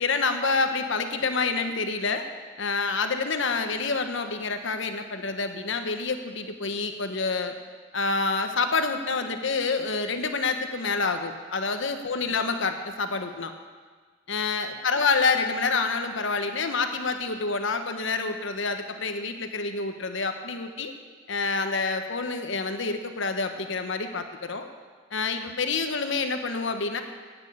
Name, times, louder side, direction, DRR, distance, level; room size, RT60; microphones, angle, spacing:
voice 1, 0.0-2.3 2.6-7.5 7.9-13.5 14.3-20.9 21.3-24.7 25.1-27.0, left 4 dB, 65° left, 7 dB, 1.1 m, -27 dB
10.5 x 9.1 x 8.5 m, 1.5 s
head